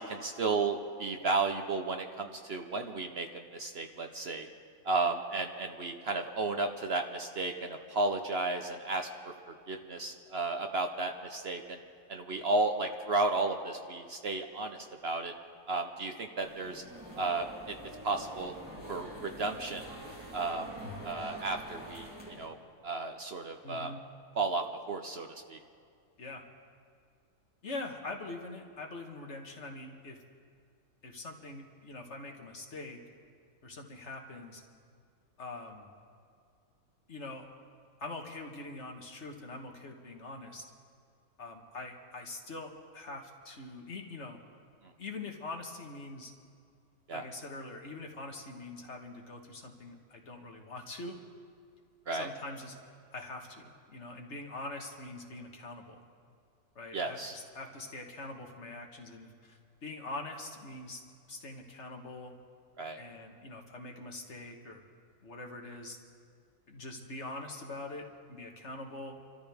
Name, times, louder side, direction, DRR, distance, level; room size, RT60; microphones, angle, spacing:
voice 1, 0.0-4.5 4.8-11.8 12.1-15.3 15.7-16.8 17.2-17.7 18.0-18.5 18.9-19.8 20.3-20.7 21.0-22.1 22.4-22.6 22.8-23.9 24.4-25.6 47.1-47.2 52.1-52.3 56.9-57.3 62.8-63.0, right 3 dB, 50° right, 5 dB, 0.9 m, -33 dB
sound 1, 16.4-22.5, equal, 5° right, 2.8 m, -46 dB
voice 2, 23.6-24.1 26.2-26.4 27.6-30.2 31.0-33.0 33.6-34.6 35.4-35.9 37.1-37.5 38.0-40.6 41.4-44.4 45.0-46.3 47.1-51.2 52.1-52.8 53.1-56.0 56.8-61.0 61.3-62.3 63.0-64.8 65.2-66.0 66.7-69.2, left 2 dB, 55° left, 2 dB, 1.7 m, -43 dB
27.5 x 13.5 x 3.5 m, 2.3 s
omnidirectional pair, 1.5 m